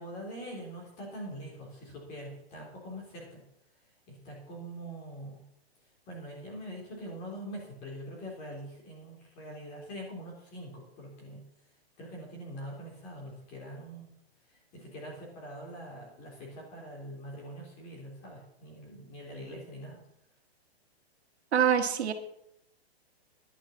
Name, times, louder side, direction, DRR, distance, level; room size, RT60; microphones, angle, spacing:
voice 1, 0.0-3.4 4.1-5.5 6.1-11.5 12.0-14.1 14.5-20.0, equal, 25° left, -2 dB, 3.5 m, -43 dB
voice 2, 21.5-22.1, right 8 dB, 90° right, 6 dB, 1.9 m, -25 dB
11.5 x 7.4 x 7.2 m, 0.77 s
hypercardioid pair, 170°, 32 cm